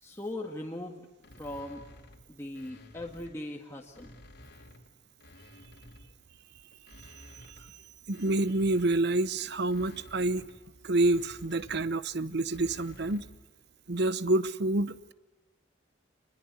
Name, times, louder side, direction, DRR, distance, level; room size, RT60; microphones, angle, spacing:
voice 1, 0.0-1.0 1.4-1.8 2.3-4.1, left 1 dB, 15° left, -1 dB, 1.9 m, -39 dB
sound 1, 1.2-3.4 3.8-6.2 6.7-13.5, left 1 dB, 65° left, 3.0 m, -53 dB
voice 2, 8.1-10.4 10.8-13.2 13.9-15.1, right 2 dB, 60° right, 16 dB, 0.9 m, -28 dB
28.0 x 21.5 x 8.3 m, 1.2 s
head